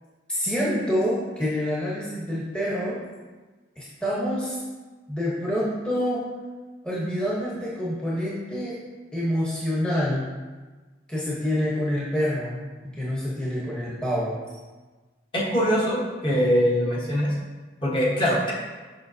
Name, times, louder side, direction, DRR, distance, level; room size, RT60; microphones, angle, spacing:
voice 1, 0.3-3.0 3.8-4.6 5.1-6.2 6.8-8.8 9.1-10.3 11.1-12.6 12.8-14.3, equal, 5° left, -7 dB, 0.9 m, -27 dB
voice 2, 15.3-17.3 17.8-18.5, equal, 25° left, -5 dB, 1.1 m, -22 dB
6.7 x 5.7 x 2.7 m, 1.3 s
head